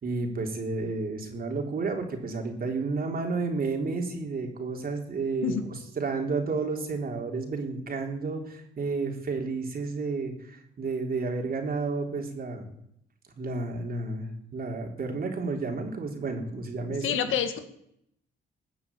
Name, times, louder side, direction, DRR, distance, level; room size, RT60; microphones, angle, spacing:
voice 1, 0.0-12.7 13.4-17.4, right 3 dB, 50° right, 2 dB, 4.0 m, -31 dB
voice 2, 17.0-17.6, left 8 dB, 85° left, 8 dB, 1.8 m, -27 dB
20.5 x 7.1 x 9.0 m, 0.75 s
cardioid pair, 90°, 20 cm